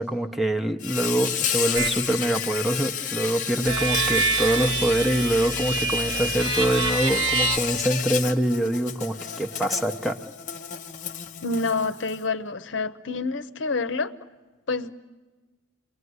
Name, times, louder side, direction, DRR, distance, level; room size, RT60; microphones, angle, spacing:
voice 1, 0.0-10.2, right 1 dB, ahead, 4 dB, 0.9 m, -24 dB
Insect, 0.8-12.2, left 9 dB, 40° left, 1.0 m, -31 dB
sound 1, 1.7-2.0 3.7-7.6, right 4 dB, 85° right, 2.3 m, -26 dB
voice 2, 11.4-14.1 14.7-14.9, left 3 dB, 70° left, 11 dB, 0.9 m, -27 dB
28.5 x 22.0 x 9.6 m, 1.2 s
head